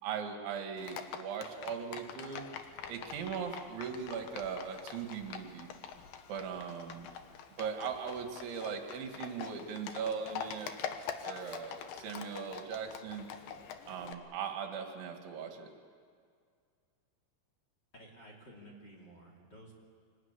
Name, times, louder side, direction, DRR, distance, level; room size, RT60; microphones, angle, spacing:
voice 1, 0.0-2.5 2.9-5.7 6.3-7.1 7.6-11.0 11.2-13.3 13.9-15.7, right 6 dB, 70° right, 4 dB, 3.9 m, -39 dB
Livestock farm animals working animals, 0.8-14.1, left 8 dB, 70° left, 2.3 m, -45 dB
voice 2, 17.9-19.7, right 1 dB, 25° left, -1 dB, 2.7 m, -53 dB
25.0 x 18.5 x 9.7 m, 2.1 s
omnidirectional pair, 5.7 m